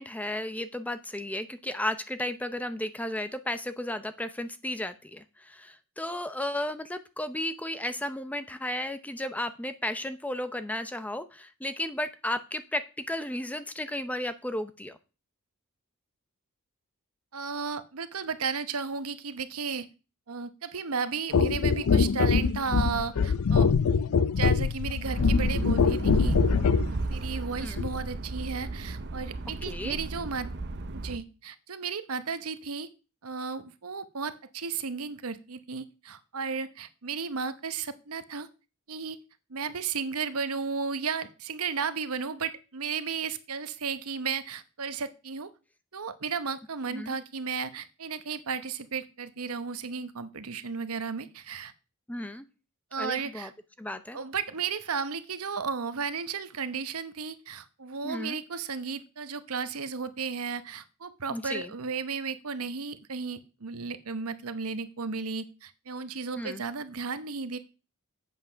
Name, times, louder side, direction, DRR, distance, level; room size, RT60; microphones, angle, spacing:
voice 1, 0.0-15.0 27.6-27.9 29.7-30.0 46.9-47.2 52.1-52.5 53.0-53.5 53.8-54.2 58.0-58.4 61.3-61.7 66.3-66.6, left 1 dB, 5° left, 11 dB, 0.6 m, -34 dB
voice 2, 17.3-19.9 20.3-23.7 24.3-26.4 27.1-30.5 30.9-32.9 33.2-38.5 38.9-39.2 39.5-45.5 45.9-51.7 52.9-53.5 54.1-67.6, right 5 dB, 75° right, 13 dB, 0.9 m, -34 dB
sound 1, 21.3-26.9 27.8-27.9, left 5 dB, 75° left, 0.5 m, -23 dB
sound 2, 25.0-31.2, right 2 dB, 50° right, 0.7 m, -33 dB
8.2 x 7.4 x 5.7 m, 0.32 s
head